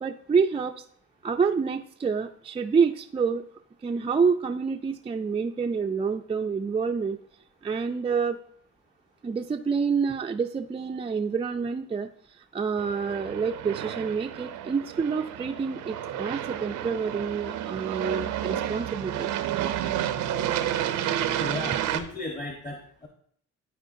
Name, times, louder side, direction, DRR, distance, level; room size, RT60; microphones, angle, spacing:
voice 1, 0.0-0.8 1.2-3.4 3.8-7.2 7.6-8.4 9.2-12.1 12.5-19.3, right 5 dB, 20° right, 4 dB, 0.3 m, -27 dB
Aircraft, 12.8-22.0, right 11 dB, 90° right, 0.6 m, -30 dB
voice 2, 21.4-23.1, left 2 dB, 25° left, 2 dB, 1.0 m, -35 dB
11.5 x 4.4 x 2.6 m, 0.63 s
cardioid pair, 90°, 30 cm